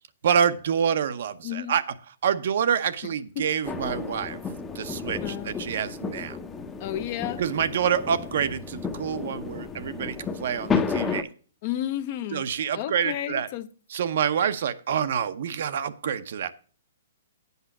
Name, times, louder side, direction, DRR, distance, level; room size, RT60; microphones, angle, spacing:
voice 1, 0.2-1.8 2.2-4.4 4.7-6.4 7.4-11.3 12.3-13.5 13.9-16.5, right 8 dB, 65° right, 0.7 m, -27 dB
voice 2, 1.4-1.8 3.4-3.5 5.2-5.5 6.8-7.4 11.6-12.5 12.7-13.7, left 12 dB, 45° left, 0.8 m, -32 dB
sound 1, 3.6-11.2, left 5 dB, 15° left, 0.8 m, -32 dB
8.1 x 5.6 x 6.0 m
hypercardioid pair, 145°, 0 cm